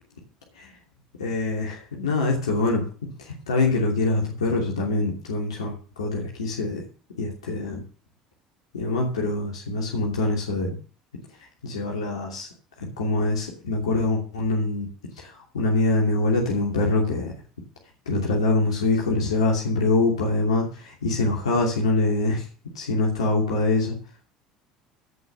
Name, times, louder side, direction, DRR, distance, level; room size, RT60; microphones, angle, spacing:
voice 1, 1.2-6.8 7.2-7.8 8.7-10.8 11.6-12.5 13.0-14.9 15.2-17.3 18.1-22.4 22.7-24.0, left 2 dB, 90° left, -1 dB, 2.8 m, -24 dB
16.0 x 5.5 x 7.8 m, 0.41 s
hypercardioid pair, 70°, 3 cm